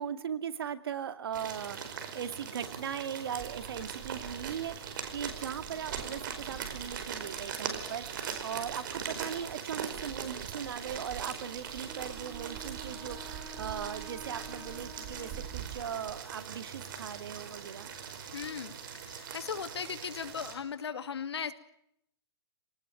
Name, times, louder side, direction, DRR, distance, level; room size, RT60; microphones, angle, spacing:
voice 1, 0.0-17.9, right 8 dB, 65° right, 10 dB, 2.3 m, -39 dB
sound 1, 1.3-20.5, right 7 dB, 50° right, 5.1 m, -41 dB
sound 2, 3.4-16.2, right 12 dB, 30° right, 1.4 m, -48 dB
Wind instrument woodwind instrument, 11.8-16.1, right 2 dB, 15° right, 2.6 m, -49 dB
voice 2, 18.3-18.7 19.0-21.5, left 7 dB, 80° left, 10 dB, 2.4 m, -37 dB
26.5 x 19.0 x 9.2 m, 0.74 s
hypercardioid pair, 160°, 13 cm